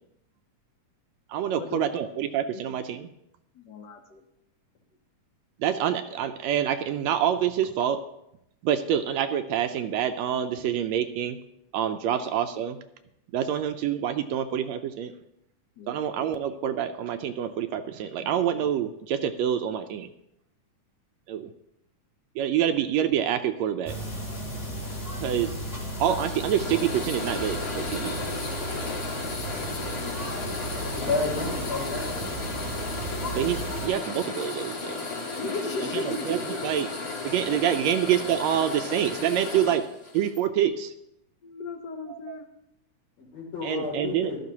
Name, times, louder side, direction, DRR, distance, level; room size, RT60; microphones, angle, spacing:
voice 1, 1.3-3.1 5.6-8.0 8.6-11.4 11.7-12.8 13.3-15.1 15.9-20.1 21.3-21.5 22.3-24.0 25.2-25.5 26.0-28.2 33.3-35.0 35.8-36.9 37.2-39.9 40.1-40.9 42.1-42.4 43.6-44.3, right 9 dB, 80° right, 9 dB, 1.7 m, -27 dB
voice 2, 3.6-4.2 15.8-16.0 29.9-30.9 35.4-36.6 37.5-37.6 41.4-42.4, left 3 dB, 80° left, 3 dB, 0.9 m, -37 dB
sound 1, 23.9-33.9, right 1 dB, 15° left, 1.9 m, -35 dB
sound 2, 24.9-40.4, left 3 dB, 40° left, 1.4 m, -35 dB
voice 3, 30.8-32.4 43.2-44.4, left 3 dB, 65° left, -2 dB, 4.2 m, -31 dB
15.5 x 12.5 x 2.9 m, 0.80 s
omnidirectional pair, 3.3 m